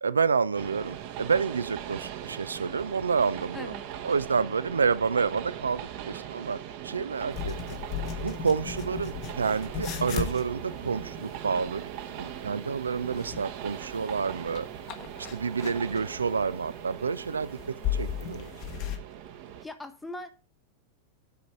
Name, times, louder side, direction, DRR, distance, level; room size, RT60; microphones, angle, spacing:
voice 1, 0.0-3.7 4.0-7.8 8.2-11.9 12.2-14.7 15.3-18.5, right 5 dB, 75° right, 0.4 m, -29 dB
Train, 0.5-19.7, right 10 dB, 45° right, 1.0 m, -40 dB
voice 2, 3.5-3.8 19.6-20.3, left 1 dB, 5° left, 0.8 m, -40 dB
sound 1, 7.3-19.0, left 8 dB, 40° left, 1.2 m, -37 dB
9.4 x 5.3 x 4.9 m
figure-of-eight pair, 90°, 0 cm